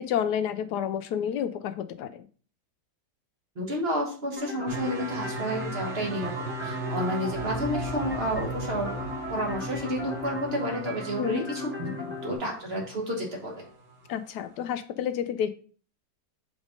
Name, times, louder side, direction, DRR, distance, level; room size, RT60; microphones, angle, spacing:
voice 1, 0.0-2.3 11.2-11.5 14.1-15.5, left 9 dB, 80° left, 11 dB, 1.1 m, -29 dB
voice 2, 3.6-9.0 9.3-13.7, equal, 40° right, 0 dB, 1.4 m, -31 dB
sound 1, 4.4-12.4, left 3 dB, 10° right, 0.8 m, -38 dB
sound 2, 4.7-13.2 13.6-14.1, right 1 dB, 85° right, 1.4 m, -37 dB
sound 3, 7.3-10.7, right 4 dB, 65° right, 1.5 m, -44 dB
5.2 x 3.6 x 5.0 m, 0.42 s
omnidirectional pair, 1.8 m